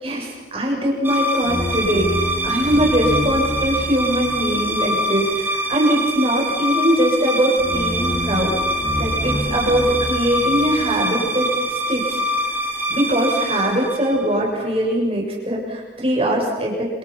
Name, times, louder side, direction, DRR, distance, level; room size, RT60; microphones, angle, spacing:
voice 1, 0.0-8.5 9.0-11.5 11.9-12.2 12.5-12.6 12.9-17.0, equal, 35° right, -1 dB, 7.3 m, -21 dB
sound 1, 1.0-14.7, equal, 10° right, 3.1 m, -24 dB
29.5 x 28.0 x 5.9 m, 1.3 s
head